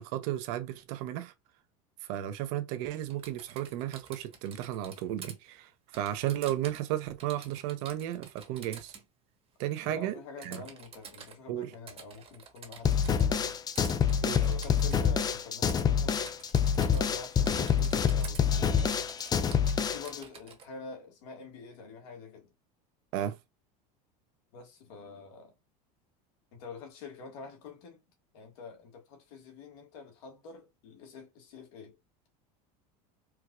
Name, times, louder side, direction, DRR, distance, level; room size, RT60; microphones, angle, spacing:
voice 1, 0.0-1.3 2.0-8.9 9.6-10.1 10.4-10.6 11.5-11.7 14.2-14.4 23.1-23.4, right 12 dB, 65° right, 0.8 m, -34 dB
Typing, 3.1-5.3 5.9-6.9 7.2-9.0 10.4-11.4 11.9-13.5 13.7-15.3 15.7-15.8 16.1-17.2 17.4-18.4 18.8-20.7, right 6 dB, 30° right, 1.1 m, -49 dB
voice 2, 9.8-13.5 14.2-16.2 16.8-19.0 19.9-22.5 24.5-25.5 26.5-28.0 28.3-32.0, left 4 dB, 70° left, 1.5 m, -46 dB
sound 1, 12.8-20.2, left 7 dB, 20° left, 0.4 m, -27 dB
4.6 x 2.3 x 2.3 m
supercardioid pair, 115°, 19 cm